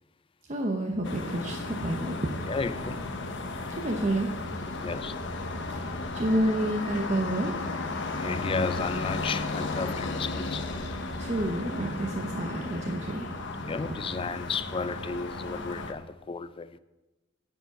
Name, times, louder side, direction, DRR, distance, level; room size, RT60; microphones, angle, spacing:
voice 1, 0.5-2.2 3.8-4.3 6.1-7.7 11.2-13.3, right 1 dB, 35° right, 0.9 m, -29 dB
sound 1, 1.0-15.9, left 2 dB, 65° left, 1.0 m, -34 dB
voice 2, 2.4-3.0 4.8-5.2 8.1-10.6 13.5-16.8, left 4 dB, 25° left, 0.4 m, -33 dB
10.5 x 5.2 x 8.1 m
head